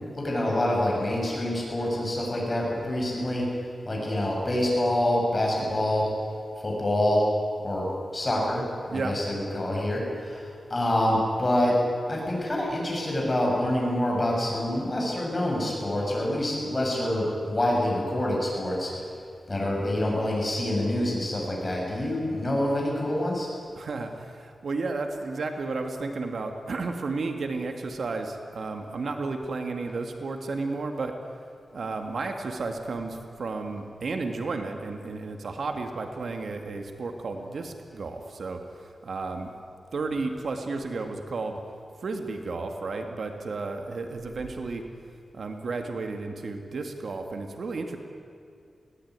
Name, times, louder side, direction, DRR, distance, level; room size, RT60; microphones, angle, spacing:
voice 1, 0.1-3.4 3.8-6.0 6.6-7.2 7.6-7.8 8.1-8.6 8.9-11.7 12.1-18.9 19.5-23.5, left 1 dB, 25° left, -2 dB, 7.5 m, -26 dB
voice 2, 23.8-31.2 31.7-39.5 39.9-41.6 42.0-44.9 45.3-48.0, right 3 dB, 70° right, 5 dB, 2.0 m, -33 dB
20.5 x 18.0 x 9.7 m, 2.3 s
wide cardioid pair, 110°, 0 cm